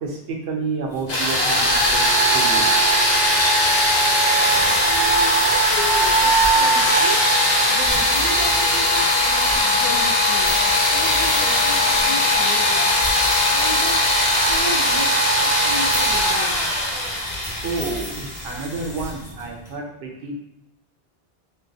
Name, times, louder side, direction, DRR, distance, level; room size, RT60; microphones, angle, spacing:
voice 1, 0.0-2.7 17.6-20.4, right 4 dB, 80° right, 0 dB, 0.9 m, -30 dB
sound 1, 0.9-19.7, left 1 dB, 65° left, 1.3 m, -36 dB
sound 2, 1.1-18.8, equal, 50° left, 0.8 m, -19 dB
voice 2, 4.8-7.2 7.7-12.9 13.5-14.0 14.5-16.6, left 1 dB, 35° right, -8 dB, 0.7 m, -33 dB
3.6 x 2.2 x 2.6 m, 0.84 s
omnidirectional pair, 1.0 m